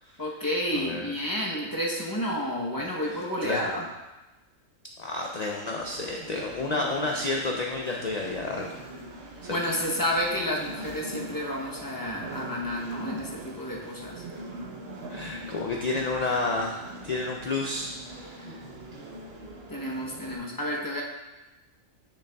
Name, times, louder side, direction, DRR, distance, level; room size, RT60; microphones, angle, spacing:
voice 1, 0.2-3.8 9.5-14.2 19.7-21.0, equal, 20° left, -2 dB, 0.6 m, -30 dB
voice 2, 0.7-1.1 2.8-3.8 5.0-8.7 9.4-9.6 15.1-18.6, left 3 dB, 80° left, 0 dB, 0.3 m, -31 dB
sound 1, 5.8-20.4, right 1 dB, 55° right, 1.0 m, -42 dB
6.5 x 6.4 x 2.3 m, 1.1 s
omnidirectional pair, 1.4 m